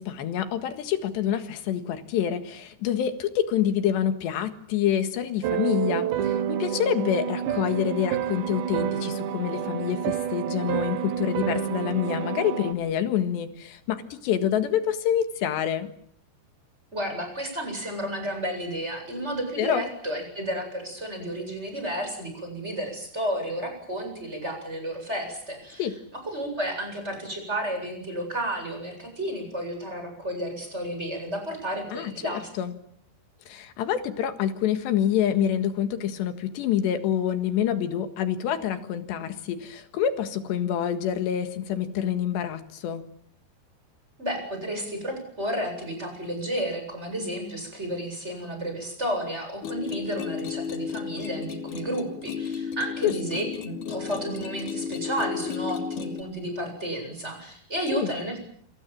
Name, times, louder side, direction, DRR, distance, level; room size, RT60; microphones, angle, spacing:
voice 1, 0.0-15.9 19.6-19.8 25.8-25.9 31.9-32.7 33.5-43.0 53.0-53.2 57.9-58.1, left 9 dB, 80° left, 9 dB, 3.9 m, -27 dB
sound 1, 5.4-12.7, right 9 dB, 85° right, 4.0 m, -29 dB
voice 2, 16.9-25.9 26.2-32.5 44.2-58.4, right 1 dB, 15° right, 4 dB, 8.2 m, -32 dB
sound 2, 49.6-56.2, left 7 dB, 55° left, 3.2 m, -33 dB
27.5 x 27.0 x 7.5 m, 0.64 s
omnidirectional pair, 4.9 m